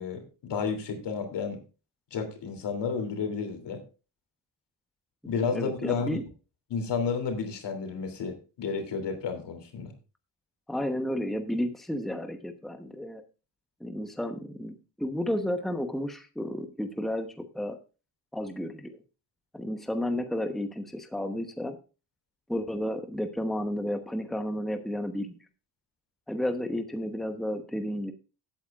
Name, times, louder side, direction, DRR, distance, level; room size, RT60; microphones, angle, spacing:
voice 1, 0.0-1.6 2.1-3.8 5.2-6.2 6.7-9.9, left 5 dB, 70° left, 7 dB, 3.2 m, -31 dB
voice 2, 5.5-6.2 10.7-13.2 13.8-17.8 18.3-19.0 19.5-21.8 22.5-25.3 26.3-28.1, left 1 dB, ahead, 7 dB, 1.0 m, -32 dB
16.5 x 8.7 x 2.4 m, 0.32 s
cardioid pair, 100°, 43 cm